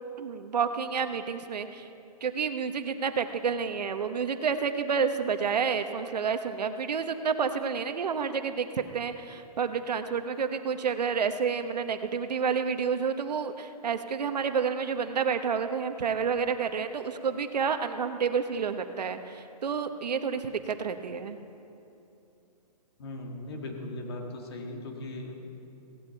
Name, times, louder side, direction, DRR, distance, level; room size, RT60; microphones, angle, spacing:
voice 1, 0.2-1.9 2.2-21.4, right 6 dB, 85° right, 8 dB, 1.1 m, -29 dB
voice 2, 23.0-25.3, left 2 dB, 40° left, 2 dB, 1.9 m, -38 dB
17.0 x 16.0 x 4.6 m, 2.8 s
hypercardioid pair, 175°, 20 cm